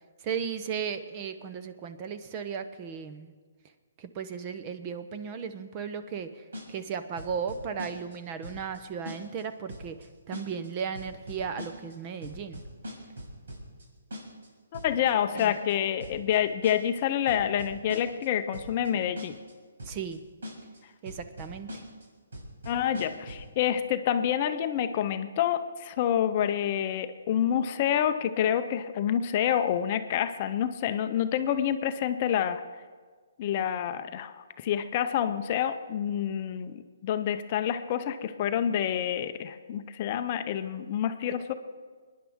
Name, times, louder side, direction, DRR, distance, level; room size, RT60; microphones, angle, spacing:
voice 1, 0.2-3.3 4.0-12.6 15.3-15.6 19.8-20.2 21.0-21.8, right 7 dB, 25° right, 9 dB, 0.7 m, -36 dB
sound 1, 6.5-6.9 7.2-8.1 8.4-8.8 9.0-9.4 9.7-10.0 10.3-10.7 10.9-11.9 12.2-13.8 14.1-14.5 14.7-15.1 15.4-15.7 16.0-16.4 16.6-17.0 17.3-18.2 18.5-18.9 19.2-19.5 19.8-20.1 20.4-20.8 21.0-22.0 22.3-23.5, equal, 75° right, 5.4 m, -41 dB
voice 2, 14.7-19.4 22.7-32.6 33.4-41.5, left 9 dB, 30° left, 9 dB, 0.6 m, -28 dB
25.5 x 10.0 x 3.6 m, 1.5 s
hypercardioid pair, 165°, 0 cm